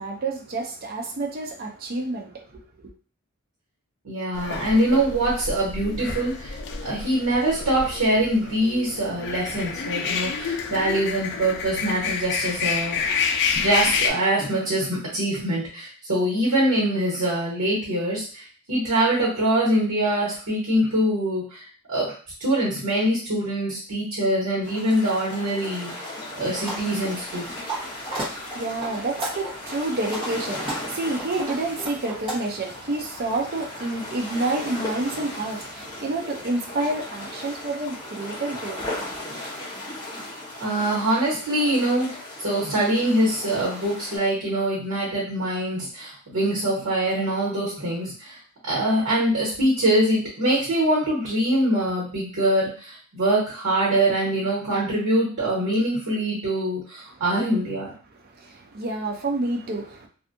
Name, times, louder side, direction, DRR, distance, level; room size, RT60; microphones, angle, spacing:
voice 1, 0.0-2.6 26.3-26.4 27.9-38.8 58.3-60.1, right 2 dB, 45° right, 1 dB, 0.5 m, -29 dB
voice 2, 4.0-13.3 13.5-21.6 21.9-22.1 22.4-27.5 40.6-48.4 48.7-57.9, right 1 dB, 85° right, -5 dB, 1.1 m, -24 dB
sound 1, 4.4-14.1, left 6 dB, 50° left, 0.3 m, -29 dB
sound 2, 24.6-44.2, left 1 dB, 20° left, 0.7 m, -37 dB
sound 3, 26.6-26.8 27.3-27.8 28.0-28.3 28.8-29.5 29.9-32.3, right 2 dB, 25° right, 1.0 m, -32 dB
2.6 x 2.3 x 2.5 m, 0.42 s
head